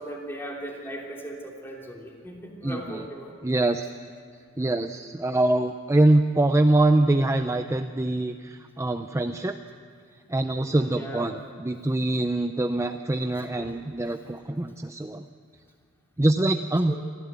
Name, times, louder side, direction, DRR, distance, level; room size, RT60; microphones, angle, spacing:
voice 1, 0.0-3.3 10.6-11.3 13.3-13.7 16.9-17.0, right 1 dB, 10° left, -1 dB, 3.1 m, -38 dB
voice 2, 2.6-3.0 3.4-3.9 4.6-9.6 10.3-15.2 16.2-16.9, right 2 dB, 15° right, 7 dB, 0.5 m, -24 dB
24.0 x 15.0 x 8.3 m, 2.2 s
head